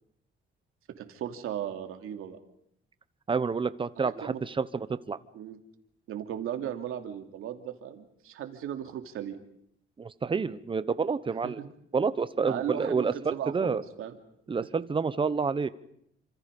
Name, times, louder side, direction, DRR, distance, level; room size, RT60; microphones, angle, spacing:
voice 1, 1.0-2.4 4.2-4.4 5.3-5.6 6.1-9.4 11.4-11.7 12.4-14.1, right 10 dB, 90° right, 6 dB, 2.9 m, -36 dB
voice 2, 3.3-5.2 10.0-11.6 11.9-13.8 14.5-15.7, right 5 dB, 25° right, 14 dB, 1.0 m, -29 dB
29.0 x 26.5 x 5.4 m, 0.71 s
cardioid pair, 150°, 21 cm